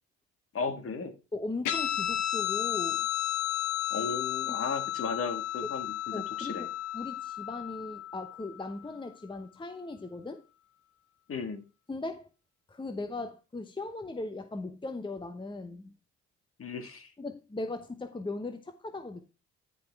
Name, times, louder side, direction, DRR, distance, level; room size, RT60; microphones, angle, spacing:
voice 1, 0.5-1.1 3.9-6.7 11.3-11.6 16.6-17.1, left 4 dB, 50° left, 1.8 m, -35 dB
voice 2, 1.3-3.0 4.5-4.6 6.1-6.7 6.9-10.4 11.9-12.3 12.7-16.0 17.2-19.3, left 2 dB, 15° left, 0.8 m, -38 dB
Guitar, 1.7-8.6, left 12 dB, 80° left, 1.4 m, -33 dB
9.9 x 5.5 x 3.4 m
cardioid pair, 90°, 30 cm